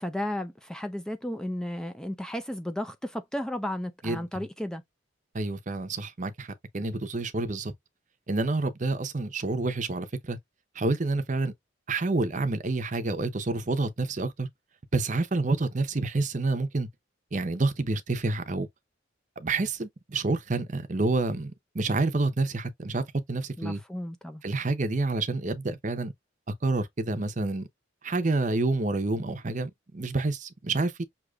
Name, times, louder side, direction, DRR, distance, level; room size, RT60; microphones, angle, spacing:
voice 1, 0.0-4.8 23.6-24.4, left 1 dB, 5° left, 0.4 m, -34 dB
voice 2, 4.0-4.4 5.3-7.7 8.3-10.4 10.8-11.5 11.9-14.5 14.9-16.9 17.3-18.7 19.4-23.8 24.4-26.1 26.6-27.7 28.0-31.0, right 3 dB, 40° right, 0.7 m, -28 dB
6.4 x 2.9 x 2.3 m
head